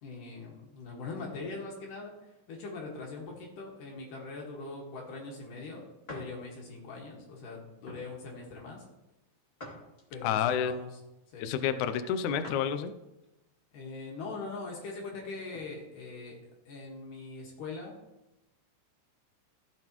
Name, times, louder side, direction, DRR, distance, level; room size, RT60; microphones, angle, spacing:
voice 1, 0.0-8.8 10.1-11.0 11.3-11.5 13.7-18.0, left 3 dB, 65° left, -2 dB, 3.2 m, -42 dB
sound 1, 6.1-6.3 6.9-7.1 7.8-8.1 9.6-10.3 12.4-12.7 13.2-13.3 15.0-15.7, left 1 dB, 20° left, 2.0 m, -47 dB
voice 2, 10.2-10.7 11.4-12.9, left 8 dB, 90° left, 10 dB, 1.7 m, -29 dB
15.5 x 7.9 x 3.0 m, 0.96 s
omnidirectional pair, 4.2 m